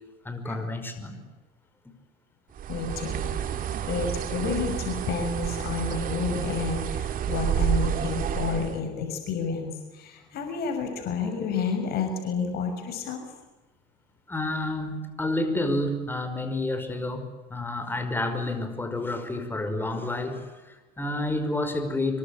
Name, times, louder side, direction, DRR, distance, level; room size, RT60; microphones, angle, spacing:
voice 1, 0.2-1.2 14.3-22.2, left 2 dB, 10° left, 7 dB, 5.4 m, -30 dB
Bird, 2.6-8.8, right 9 dB, 50° right, 2.9 m, -29 dB
voice 2, 2.7-3.3 3.9-13.2, left 5 dB, 60° left, 5 dB, 6.4 m, -30 dB
26.0 x 24.0 x 8.7 m, 1.1 s
supercardioid pair, 110°, 18 cm